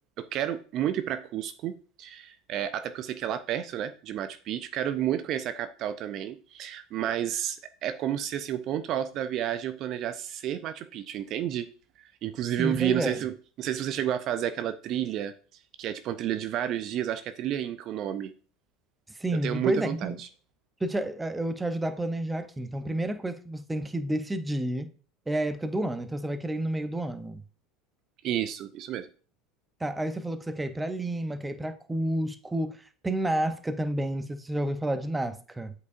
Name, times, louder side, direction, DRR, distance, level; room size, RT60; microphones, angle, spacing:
voice 1, 0.2-11.7 12.2-15.3 15.8-18.3 19.4-20.3 28.2-29.1, right 11 dB, 50° right, 0.4 m, -31 dB
voice 2, 12.6-13.2 19.2-20.2 20.8-24.9 25.3-27.4 29.8-32.8 33.0-35.7, right 1 dB, 10° right, 0.7 m, -30 dB
8.1 x 4.7 x 2.5 m
hypercardioid pair, 75°, 0 cm